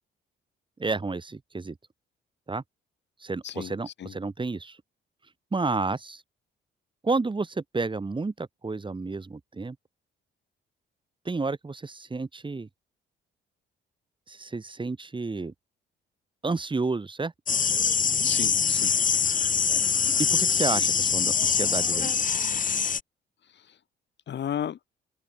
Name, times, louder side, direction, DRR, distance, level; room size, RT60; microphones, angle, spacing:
voice 1, 0.8-1.8 2.5-2.6 3.2-4.8 5.5-6.2 7.0-9.8 11.3-12.7 14.3-15.5 16.4-17.3 20.2-22.1, right 3 dB, 25° right, 5.2 m, -30 dB
voice 2, 3.4-4.1 18.2-18.9 23.5-23.8 24.3-24.8, left 9 dB, 60° left, 7.2 m, -34 dB
sound 1, 17.5-23.0, left 6 dB, 40° left, 3.1 m, -24 dB
open air
cardioid pair, 90°, 20 cm